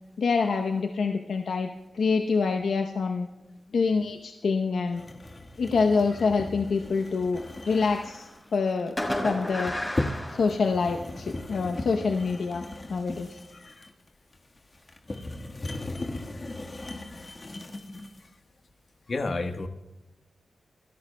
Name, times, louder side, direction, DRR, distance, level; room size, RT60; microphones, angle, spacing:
voice 1, 0.2-3.3 3.7-5.0 5.6-9.0 9.2-9.7 10.3-12.6 12.9-13.3, left 4 dB, 80° left, 3 dB, 0.8 m, -26 dB
sound 1, 4.9-18.3, left 2 dB, 40° left, 1.5 m, -37 dB
Fireworks, 7.4-8.3 9.0-11.2, left 1 dB, 20° left, 4.5 m, -33 dB
voice 2, 13.5-13.9 16.4-16.5 19.1-19.7, left 3 dB, 55° left, 6 dB, 1.2 m, -31 dB
28.5 x 13.5 x 2.2 m, 1.1 s
cardioid pair, 55°, 0 cm